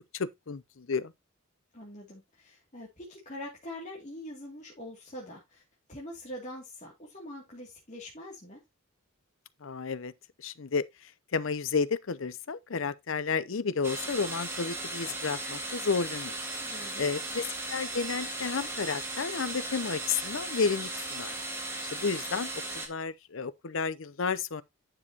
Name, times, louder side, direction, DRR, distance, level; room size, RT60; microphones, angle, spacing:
voice 1, 0.1-1.1 9.6-10.1 10.4-10.9 11.3-16.4 17.0-21.3 21.8-24.6, left 5 dB, 70° left, 0.6 m, -32 dB
voice 2, 1.7-5.6 5.9-8.6 16.6-17.1, left 1 dB, 35° left, 2.5 m, -44 dB
sound 1, 13.8-22.9, right 2 dB, 10° right, 1.7 m, -37 dB
9.9 x 6.6 x 2.9 m
head